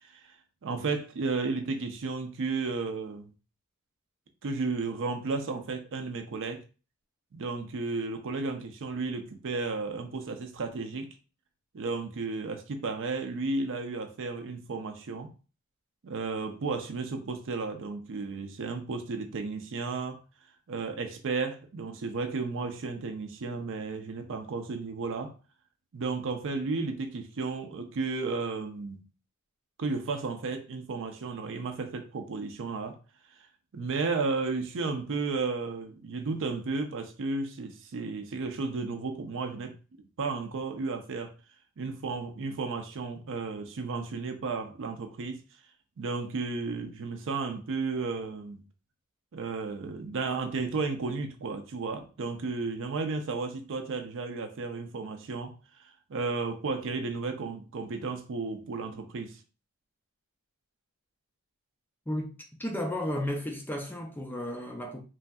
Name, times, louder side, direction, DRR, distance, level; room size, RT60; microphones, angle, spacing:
voice 1, 0.6-3.3 4.4-6.6 7.3-11.1 11.7-15.3 16.0-20.2 20.7-25.3 25.9-29.0 29.8-33.0 33.7-39.7 40.2-41.3 41.8-45.4 46.0-48.6 49.3-55.5 56.1-59.4, right 4 dB, 60° right, 0.5 m, -33 dB
voice 2, 62.6-65.0, left 1 dB, 10° left, 0.3 m, -33 dB
3.1 x 2.6 x 2.2 m
head